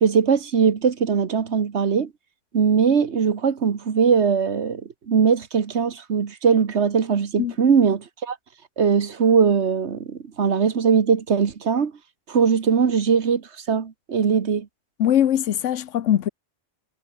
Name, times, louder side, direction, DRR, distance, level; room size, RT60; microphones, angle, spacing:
voice 1, 0.0-2.1 2.5-4.8 5.1-8.4 8.8-11.9 12.3-14.7, right 6 dB, 65° right, 1.6 m, -20 dB
voice 2, 15.0-16.3, left 10 dB, 85° left, 1.1 m, -21 dB
omnidirectional pair, 1.2 m